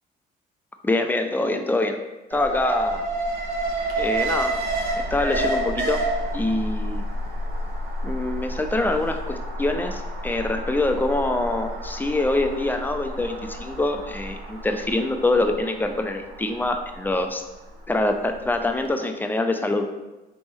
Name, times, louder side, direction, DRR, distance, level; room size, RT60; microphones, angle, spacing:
voice 1, 0.8-2.0 2.3-3.0 4.0-4.5 5.1-6.0 6.3-7.0 8.0-17.4 17.9-19.8, left 2 dB, 10° left, 5 dB, 0.4 m, -25 dB
Alarm, 2.3-18.4 18.7-18.8, right 1 dB, 70° right, 0.8 m, -29 dB
4.0 x 3.3 x 3.5 m, 1.1 s
cardioid pair, 110°, 17 cm